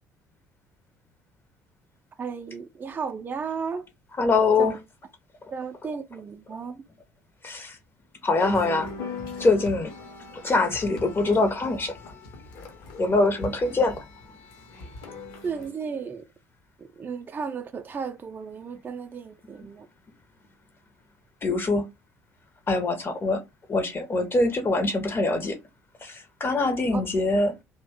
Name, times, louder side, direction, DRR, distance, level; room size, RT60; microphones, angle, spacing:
voice 1, 2.2-3.9 4.6-4.7 5.5-6.8 15.4-16.2 16.8-19.9 26.9-27.0, right 5 dB, 25° right, 0.4 m, -34 dB
voice 2, 4.2-4.7 7.4-7.8 8.2-8.9 9.4-9.9 10.4-12.0 13.0-14.0 21.4-21.8 22.7-23.4 23.7-25.6 26.0-27.5, left 3 dB, 30° left, 0.7 m, -23 dB
sound 1, 8.4-15.7, left 3 dB, 60° left, 0.8 m, -40 dB
2.6 x 2.1 x 3.4 m
figure-of-eight pair, 50°, 8 cm